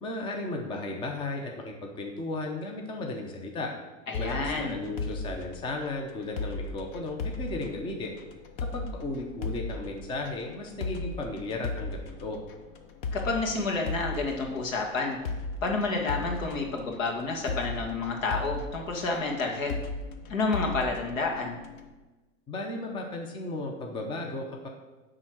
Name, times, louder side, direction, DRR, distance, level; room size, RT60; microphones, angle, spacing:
voice 1, 0.0-3.7 4.2-8.2 8.7-12.4 22.5-24.7, left 2 dB, 15° left, 2 dB, 0.7 m, -35 dB
voice 2, 4.1-4.7 13.1-15.2 15.6-19.7 20.3-21.6, left 3 dB, 75° left, 1 dB, 2.1 m, -29 dB
sound 1, 4.1-21.9, left 3 dB, 40° left, 0.9 m, -37 dB
9.5 x 3.8 x 6.1 m, 1.2 s
hypercardioid pair, 135°, 40 cm